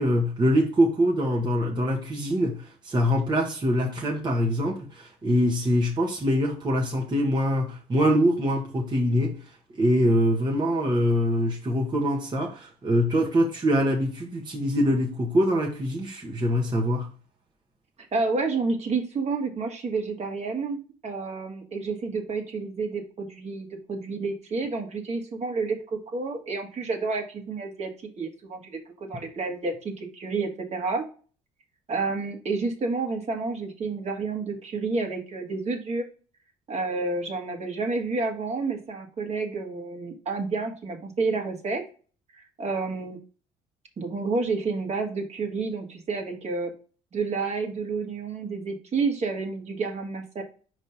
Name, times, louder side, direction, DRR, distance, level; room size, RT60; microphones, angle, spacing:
voice 1, 0.0-17.1, equal, 30° right, 1.3 m, -24 dB
voice 2, 18.1-27.9 28.2-31.0 31.9-36.0 36.7-41.8 42.3-43.2 44.0-46.7 47.1-50.4, right 4 dB, 45° right, 1.7 m, -30 dB
5.2 x 3.2 x 5.5 m
supercardioid pair, 70°, 16 cm